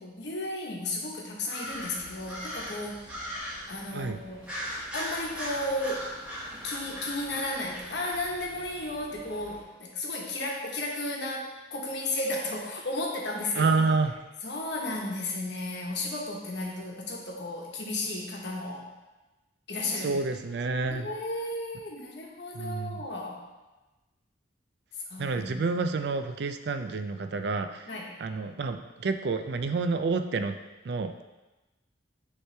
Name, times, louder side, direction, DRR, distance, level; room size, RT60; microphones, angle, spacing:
voice 1, 0.0-3.0 3.7-4.4 4.9-6.1 6.5-13.9 14.4-18.9 19.7-20.2 20.9-23.4 25.1-25.7 27.9-28.1, left 2 dB, 65° left, -1 dB, 1.1 m, -34 dB
sound 1, 1.5-3.7 4.4-8.5, equal, 5° right, 1.1 m, -38 dB
sound 2, 1.6-9.6, equal, 20° left, 1.7 m, -52 dB
voice 2, 13.6-14.1 20.0-21.1 22.5-23.0 25.2-27.9 28.2-30.6 30.8-31.2, right 4 dB, 60° right, 8 dB, 0.4 m, -29 dB
9.2 x 3.2 x 3.3 m, 1.1 s
head